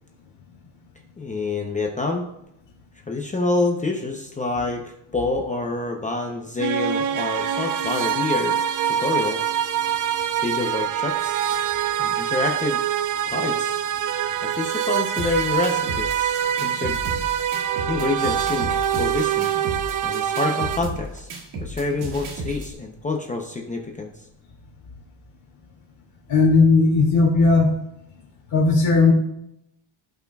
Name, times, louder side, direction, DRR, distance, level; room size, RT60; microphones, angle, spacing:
voice 1, 1.2-2.3 3.1-8.6 8.8-9.4 10.4-11.3 12.0-12.8 13.3-13.8 14.5-17.0 17.9-19.5 20.0-21.3 21.6-24.1, left 3 dB, 15° left, 2 dB, 0.6 m, -27 dB
sound 1, 6.6-20.8, right 9 dB, 45° right, 0.5 m, -24 dB
sound 2, 15.2-22.7, right 1 dB, 85° right, 2.2 m, -34 dB
voice 2, 26.3-27.7 28.5-29.1, left 3 dB, 55° left, -8 dB, 2.8 m, -16 dB
15.5 x 5.8 x 2.3 m, 0.81 s
cardioid pair, 160°, 47 cm